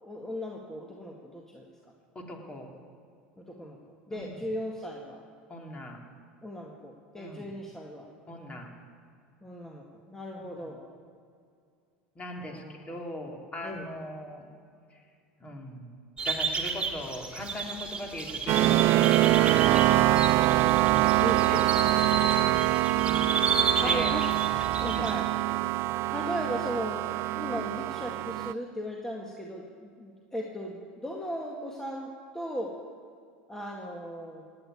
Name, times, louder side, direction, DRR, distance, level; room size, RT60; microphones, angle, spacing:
voice 1, 0.0-1.9 3.4-3.8 4.1-5.2 6.4-8.1 9.4-10.8 12.3-12.8 13.6-13.9 21.2-22.7 22.9-23.1 23.8-24.2 24.8-25.3 26.1-32.7 33.5-34.4, equal, 10° left, -1 dB, 1.9 m, -37 dB
voice 2, 2.1-2.7 4.1-4.5 5.5-6.0 7.1-7.5 8.3-8.7 12.1-14.5 14.9-15.0 15.4-15.9 16.2-19.5 19.9-20.3 20.9-21.6 22.9-24.1 24.4-24.6 24.9-25.0, left 1 dB, 25° left, 1 dB, 3.3 m, -40 dB
sound 1, 16.2-25.2, right 5 dB, 20° right, 2.7 m, -32 dB
sound 2, 18.5-28.5, right 16 dB, 50° right, 0.4 m, -24 dB
16.5 x 8.7 x 9.7 m, 2.2 s
hypercardioid pair, 85°, 5 cm